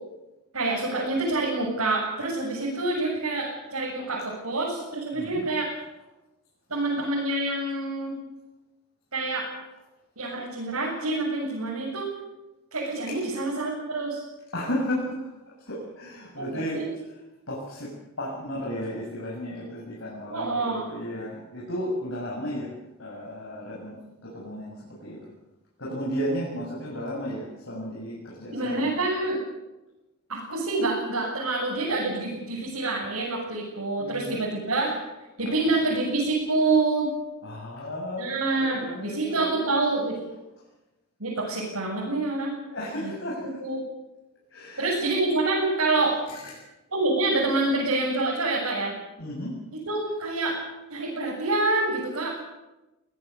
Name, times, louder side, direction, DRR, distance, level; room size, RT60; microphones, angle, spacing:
voice 1, 0.5-5.7 6.7-8.2 9.1-9.5 10.2-12.1 12.7-14.2 16.4-16.9 20.3-20.9 28.5-29.4 30.3-35.0 35.4-37.1 38.2-40.2 41.2-42.6 43.0-43.1 43.6-43.8 44.8-46.2 46.9-48.9 49.7-50.6 50.9-52.3, right 2 dB, 90° right, -4 dB, 7.8 m, -27 dB
voice 2, 5.1-5.4 13.1-13.2 14.5-15.3 15.6-16.8 17.5-17.9 18.2-22.7 23.0-25.2 25.8-28.9 34.0-34.4 37.4-39.6 42.7-43.4 44.5-45.0 46.3-46.4 49.2-49.6, equal, 60° left, -5 dB, 7.2 m, -34 dB
23.5 x 18.5 x 8.3 m, 1.0 s
head